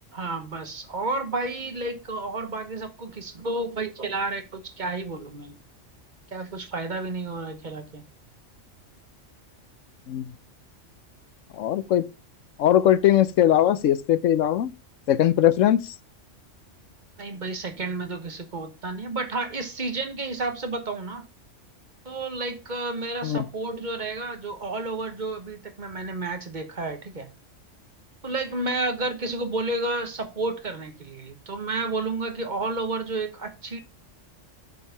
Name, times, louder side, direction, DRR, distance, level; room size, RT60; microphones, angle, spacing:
voice 1, 0.1-5.6 6.3-8.0 17.2-21.3 22.0-27.3 28.2-33.8, right 2 dB, 40° right, 1.2 m, -31 dB
voice 2, 11.5-12.0 12.6-14.7 15.1-15.9 23.2-23.4, left 11 dB, 90° left, 1.0 m, -20 dB
8.1 x 4.7 x 5.4 m
omnidirectional pair, 1.3 m